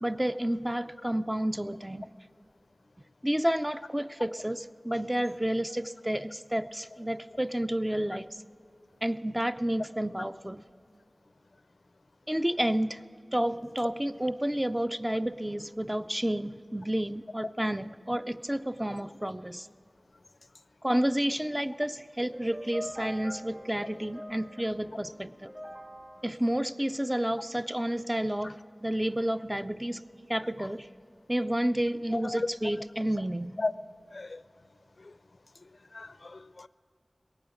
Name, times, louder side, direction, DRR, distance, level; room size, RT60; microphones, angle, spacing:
voice 1, 0.0-2.1 3.2-8.3 9.0-10.6 12.3-13.0 13.3-19.7 20.8-25.5 26.2-30.0 30.3-30.9 31.3-33.6, right 1 dB, 15° right, 0.4 m, -30 dB
sound 1, 22.3-27.6, equal, 90° right, 4.4 m, -45 dB
voice 2, 34.1-34.4 35.0-35.1 35.9-36.7, left 3 dB, 70° left, 0.4 m, -35 dB
21.0 x 8.9 x 7.1 m
wide cardioid pair, 45°, 0 cm